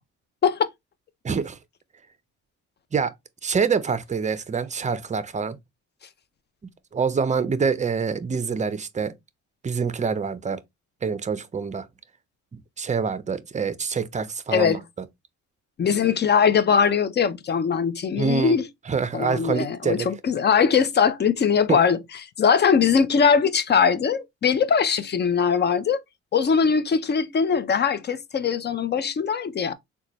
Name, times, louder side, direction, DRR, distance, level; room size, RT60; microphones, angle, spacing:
voice 1, 1.2-1.6 2.9-3.1 3.4-5.6 6.9-9.1 9.6-10.6 11.0-11.9 12.5-14.8 18.2-18.6 18.9-20.1 21.7-21.8, right 5 dB, 25° right, 0.5 m, -26 dB
voice 2, 15.8-18.7 19.1-22.0 22.4-26.0 26.3-29.7, left 6 dB, 35° left, 0.5 m, -21 dB
3.9 x 2.3 x 2.9 m
cardioid pair, 90°, 30 cm